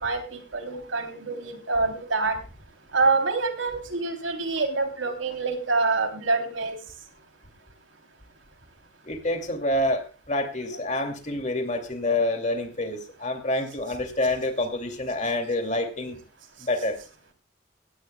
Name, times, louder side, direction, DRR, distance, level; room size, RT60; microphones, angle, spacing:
voice 1, 0.0-2.4 2.9-6.8, right 3 dB, 75° right, 5 dB, 3.2 m, -26 dB
voice 2, 9.1-16.2 16.6-17.0, left 1 dB, 35° left, 6 dB, 2.5 m, -27 dB
17.5 x 17.5 x 2.3 m, 0.33 s
head